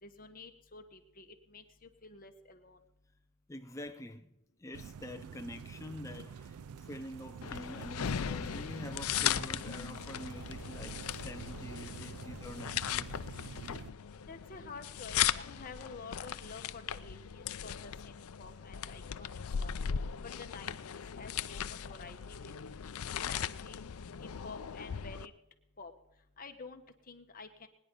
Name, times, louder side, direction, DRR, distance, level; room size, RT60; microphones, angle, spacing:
voice 1, 0.0-2.8 14.3-19.7 20.2-20.8 21.1-22.5 23.2-23.8 24.2-25.3 25.8-25.9 26.4-26.8 27.1-27.7, left 4 dB, 40° left, 1.3 m, -50 dB
voice 2, 3.5-4.3 4.6-13.1, left 1 dB, 15° left, 0.5 m, -46 dB
sound 1, 4.7-13.9, right 7 dB, 80° right, 0.4 m, -47 dB
sound 2, 7.4-25.3, left 9 dB, 75° left, 0.5 m, -38 dB
22.0 x 10.0 x 3.8 m
head